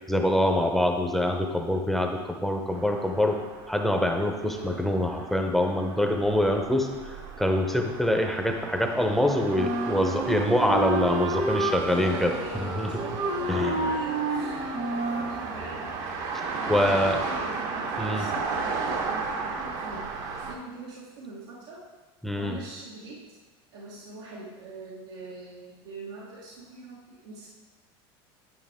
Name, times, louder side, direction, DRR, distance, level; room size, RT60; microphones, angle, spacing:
voice 1, 0.1-3.4 3.7-12.3 12.6-12.9 13.5-13.9 16.7-17.2 18.0-18.3 22.2-22.6, left 1 dB, ahead, 3 dB, 0.8 m, -25 dB
sound 1, 2.7-20.5, right 4 dB, 65° right, 1.2 m, -35 dB
voice 2, 4.4-4.8 11.9-14.8 15.1-15.9 16.5-21.8 22.4-23.2 23.7-27.5, right 3 dB, 90° right, -7 dB, 1.7 m, -42 dB
Wind instrument woodwind instrument, 9.5-15.4, right 2 dB, 45° right, 1.2 m, -30 dB
9.9 x 5.3 x 3.6 m, 1.3 s
supercardioid pair, 115°, 13 cm